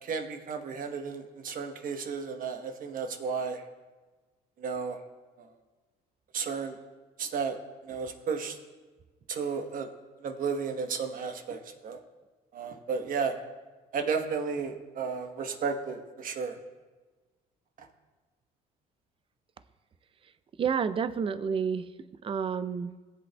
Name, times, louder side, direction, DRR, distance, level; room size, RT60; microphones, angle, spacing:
voice 1, 0.0-3.6 4.6-5.0 5.4-5.5 6.3-6.8 7.2-7.6 7.8-8.6 9.3-9.9 10.2-12.0 12.5-13.4 13.9-16.6 17.8-17.9, right 5 dB, 55° right, 5 dB, 1.1 m, -33 dB
voice 2, 20.6-21.9 22.2-22.9, right 6 dB, 30° right, 13 dB, 0.5 m, -29 dB
19.0 x 7.8 x 2.3 m, 1.3 s
cardioid pair, 110°, 17 cm